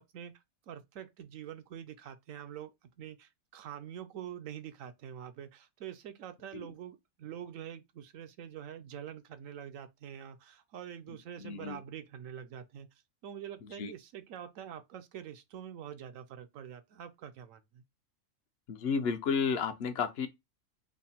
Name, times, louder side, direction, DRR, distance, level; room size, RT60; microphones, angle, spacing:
voice 1, 0.0-12.9 13.2-17.8, right 9 dB, 75° right, 1.0 m, -45 dB
voice 2, 11.4-11.8 13.8-13.9 18.7-20.3, left 6 dB, 55° left, 0.8 m, -32 dB
3.6 x 2.1 x 4.1 m
omnidirectional pair, 1.4 m